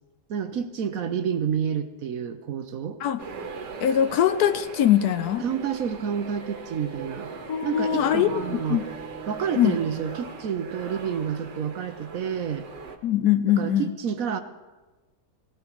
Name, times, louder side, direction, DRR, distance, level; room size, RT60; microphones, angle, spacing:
voice 1, 0.3-3.0 5.4-7.3 7.6-8.8 9.3-12.7 13.6-14.4, right 7 dB, 60° right, 9 dB, 1.0 m, -29 dB
sound 1, 3.2-13.0, right 4 dB, 90° right, 1.9 m, -39 dB
voice 2, 3.8-5.4 7.5-8.8 9.5-9.8 13.0-13.8, left 10 dB, 70° left, 11 dB, 1.1 m, -22 dB
sound 2, 7.8-12.1, right 2 dB, 50° left, 3.6 m, -45 dB
18.5 x 17.5 x 3.0 m, 1.2 s
omnidirectional pair, 1.8 m